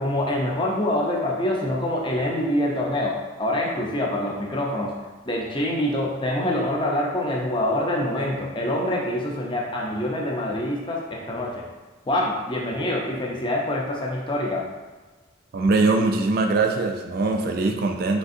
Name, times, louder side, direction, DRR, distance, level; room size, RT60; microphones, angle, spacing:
voice 1, 0.0-4.9 5.3-11.6 12.1-14.6, left 1 dB, 25° left, -2 dB, 0.6 m, -25 dB
voice 2, 15.5-18.2, right 3 dB, 45° right, 4 dB, 0.3 m, -22 dB
5.3 x 3.3 x 2.6 m, 1.3 s
head